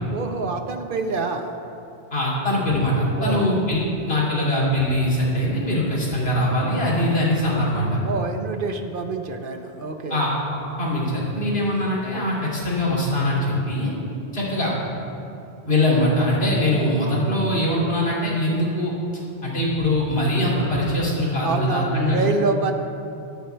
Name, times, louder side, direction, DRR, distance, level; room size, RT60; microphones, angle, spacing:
voice 1, 0.1-1.6 3.2-3.5 8.0-10.2 21.4-22.7, right 4 dB, 55° right, 6 dB, 1.0 m, -26 dB
voice 2, 2.1-2.9 3.2-8.0 10.1-10.4 10.8-13.9 14.3-14.7 15.7-18.9 19.4-22.2, left 1 dB, 65° left, -5 dB, 3.2 m, -22 dB
15.5 x 11.5 x 3.4 m, 2.7 s
omnidirectional pair, 1.1 m